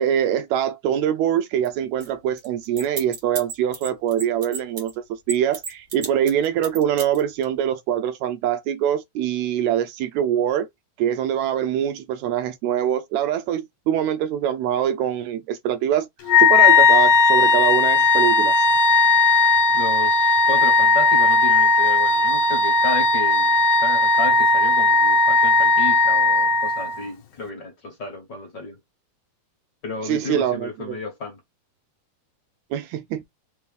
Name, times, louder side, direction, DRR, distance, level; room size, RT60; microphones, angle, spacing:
voice 1, 0.0-10.7 11.0-16.1 16.4-18.7 30.0-31.0 32.7-33.3, right 10 dB, 80° right, 1.7 m, -24 dB
sound 1, 1.7-1.8 2.0-2.1 2.4-4.9 5.3-7.4, right 4 dB, 45° right, 2.0 m, -33 dB
Wind instrument woodwind instrument, 16.3-27.0, left 3 dB, 75° left, 1.1 m, -17 dB
voice 2, 19.7-28.8 29.8-31.4, left 3 dB, 45° left, 1.5 m, -33 dB
4.5 x 3.0 x 3.4 m
omnidirectional pair, 3.4 m